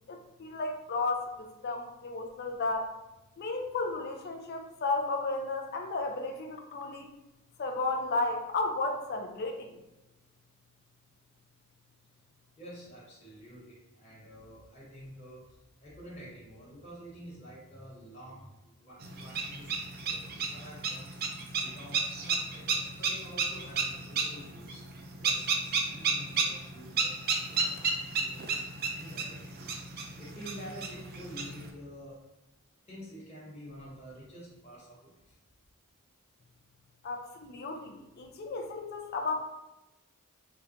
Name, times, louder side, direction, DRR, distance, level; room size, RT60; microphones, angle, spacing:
voice 1, 0.1-3.0 3.4-7.1 7.6-9.8 37.0-39.3, left 3 dB, 45° left, 4 dB, 0.4 m, -33 dB
voice 2, 12.6-21.2 21.6-24.8 25.2-28.5 28.9-29.5 29.8-32.2 32.8-35.4, equal, 30° left, -7 dB, 1.1 m, -49 dB
sound 1, 19.0-31.7, right 4 dB, 45° right, 0.4 m, -33 dB
3.9 x 2.2 x 2.5 m, 0.97 s
head